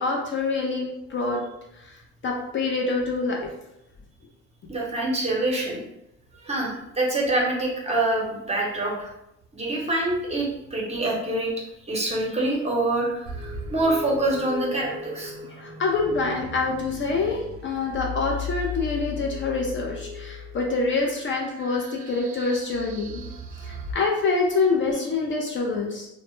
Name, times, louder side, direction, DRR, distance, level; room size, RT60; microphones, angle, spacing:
voice 1, 0.0-1.4 1.8-2.0 2.2-3.5 15.6-23.3 23.6-26.1, left 3 dB, 40° left, -1 dB, 0.4 m, -26 dB
voice 2, 4.7-5.8 6.4-9.1 9.5-11.5 11.9-15.3, right 2 dB, 20° right, -3 dB, 0.8 m, -25 dB
sound 1, 13.3-23.9, left 3 dB, 70° right, 0.5 m, -37 dB
2.1 x 2.0 x 3.0 m, 0.85 s
cardioid pair, 90°, 30 cm